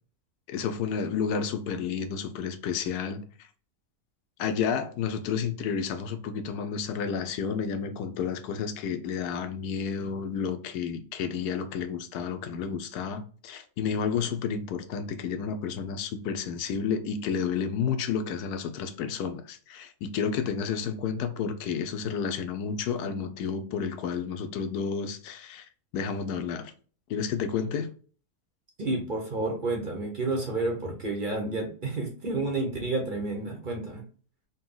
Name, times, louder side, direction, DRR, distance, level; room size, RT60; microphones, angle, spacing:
voice 1, 0.5-3.2 4.4-25.7 25.9-26.7 27.1-27.9, left 6 dB, 90° left, 1.2 m, -31 dB
voice 2, 28.8-34.0, right 2 dB, 40° right, 0.8 m, -30 dB
4.1 x 2.3 x 3.7 m
omnidirectional pair, 1.6 m